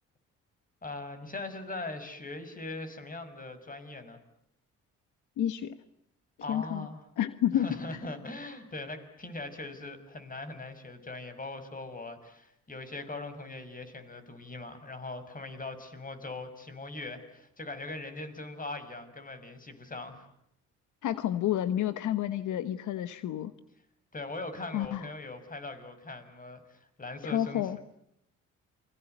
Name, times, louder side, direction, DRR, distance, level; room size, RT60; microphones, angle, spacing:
voice 1, 0.8-4.2 6.4-7.0 7.5-20.3 24.1-27.8, left 2 dB, 30° left, 9 dB, 6.3 m, -41 dB
voice 2, 5.4-5.7 6.5-6.9 7.2-7.7 21.0-23.5 24.7-25.0 27.2-27.8, left 11 dB, 80° left, 13 dB, 1.4 m, -30 dB
29.0 x 24.0 x 8.0 m, 0.77 s
cardioid pair, 90°, 30 cm